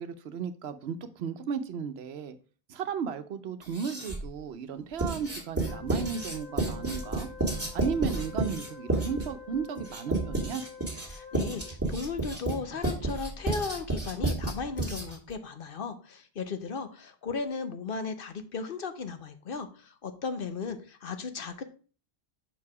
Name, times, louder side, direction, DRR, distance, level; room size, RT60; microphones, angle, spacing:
voice 1, 0.0-2.4 2.7-7.3 7.7-10.6, right 6 dB, 75° right, 11 dB, 0.9 m, -35 dB
Writing, 3.6-4.3 5.0-15.3, right 2 dB, 15° right, 1.7 m, -31 dB
Wind instrument woodwind instrument, 5.6-11.9, left 6 dB, 85° left, 1.5 m, -48 dB
voice 2, 11.1-21.6, left 5 dB, 60° left, 9 dB, 1.0 m, -36 dB
6.0 x 4.7 x 4.8 m, 0.38 s
omnidirectional pair, 1.1 m